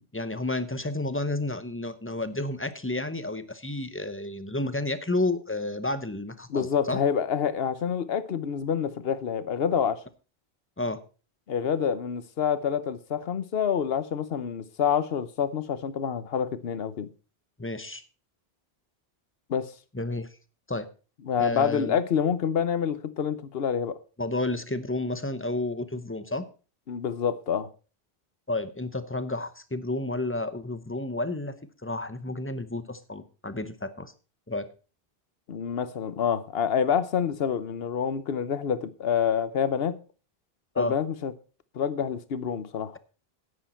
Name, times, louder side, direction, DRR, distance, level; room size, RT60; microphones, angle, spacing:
voice 1, 0.1-7.0 10.8-11.0 17.6-18.0 19.9-20.3 20.7-20.9 21.4-22.0 24.2-26.4 28.5-31.5 31.8-34.1 34.5-34.7 40.7-41.0, left 2 dB, 15° left, 0.8 m, -31 dB
voice 2, 6.5-10.0 11.5-17.1 19.5-19.7 21.2-24.0 26.9-27.7 35.5-40.0 40.8-41.3 41.7-42.9, left 7 dB, 70° left, 1.1 m, -27 dB
10.0 x 9.7 x 4.4 m
omnidirectional pair, 1.0 m